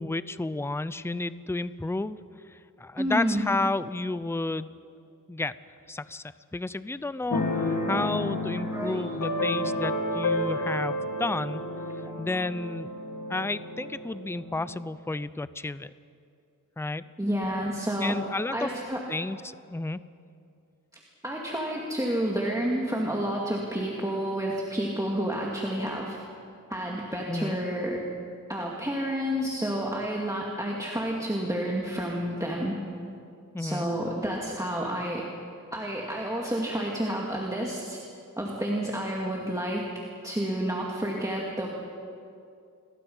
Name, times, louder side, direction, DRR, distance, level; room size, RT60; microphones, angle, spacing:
voice 1, 0.0-2.2 2.5-4.8 5.3-5.6 5.9-6.2 6.5-11.6 12.2-12.9 13.3-15.9 16.8-17.0 18.0-18.7 19.1-20.0 27.3-27.6 33.5-33.9, left 2 dB, 10° left, 15 dB, 0.5 m, -31 dB
voice 2, 3.0-3.5 7.9-8.1 8.7-9.0 9.6-9.7 12.0-12.1 17.2-18.2 18.5-19.0 21.2-26.2 26.7-28.0 28.5-32.8 33.6-35.2 35.7-38.0 38.4-39.9 40.2-41.7, right 1 dB, 10° right, -3 dB, 2.4 m, -30 dB
Keyboard (musical), 7.3-14.8, left 1 dB, 60° left, 2.3 m, -31 dB
29.5 x 22.0 x 5.6 m, 2.5 s
wide cardioid pair, 110°, 34 cm